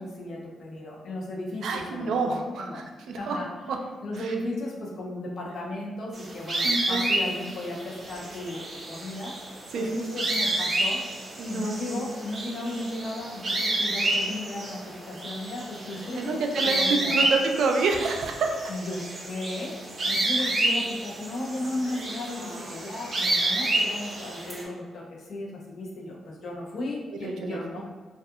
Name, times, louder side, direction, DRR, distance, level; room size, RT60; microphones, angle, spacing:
voice 1, 0.0-2.8 3.1-3.5 4.0-9.3 9.7-11.0 11.4-16.4 16.7-17.3 18.7-19.7 20.1-27.8, left 1 dB, 70° left, -3 dB, 0.6 m, -35 dB
voice 2, 1.6-3.4 3.7-3.8 6.6-7.0 9.7-10.0 11.4-12.0 16.2-18.7 20.4-20.6 27.2-27.6, right 4 dB, 80° right, 3 dB, 0.3 m, -28 dB
sound 1, 6.1-24.6, right 1 dB, 40° right, 0.6 m, -29 dB
2.4 x 2.3 x 2.6 m, 1.4 s
cardioid pair, 90°, 0 cm